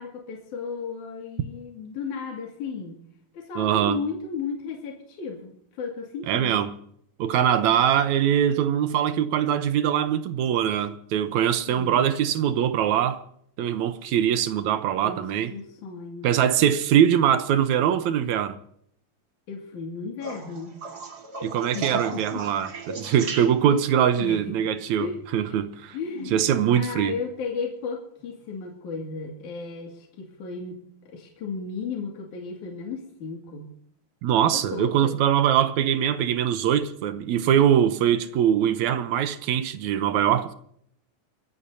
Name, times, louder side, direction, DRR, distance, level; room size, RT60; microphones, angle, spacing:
voice 1, 0.0-3.0 3.3-6.6 11.7-12.1 15.0-16.3 19.5-20.8 21.7-22.4 23.7-23.8 24.2-24.6 25.0-25.6 25.9-33.7 34.5-35.2, left 5 dB, 65° left, 3.7 m, -34 dB
voice 2, 3.6-4.0 6.3-6.7 7.2-13.2 13.6-15.5 16.2-18.6 21.4-26.0 26.3-27.2 34.2-40.5, right 9 dB, 70° right, 2.0 m, -22 dB
Pee - Pinkeln, 20.2-23.9 26.1-26.5 28.2-28.3, right 4 dB, 35° right, 2.0 m, -36 dB
29.0 x 15.0 x 2.8 m
omnidirectional pair, 3.8 m